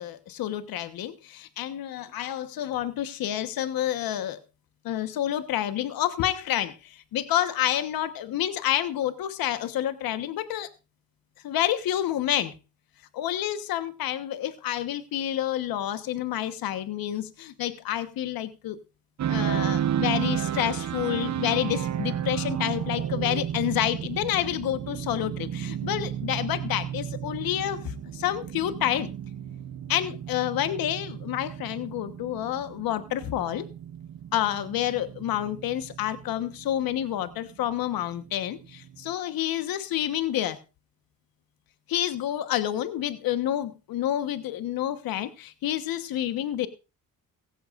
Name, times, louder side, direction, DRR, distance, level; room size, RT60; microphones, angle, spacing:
voice 1, 0.0-4.4 4.8-10.7 11.4-12.5 13.1-18.8 19.3-29.1 29.9-33.6 34.3-40.6 41.9-46.7, left 12 dB, 80° left, 11 dB, 1.2 m, -29 dB
sound 1, 19.2-39.1, right 10 dB, 50° right, 0.7 m, -33 dB
16.5 x 15.0 x 2.5 m, 0.30 s
cardioid pair, 80°, 35 cm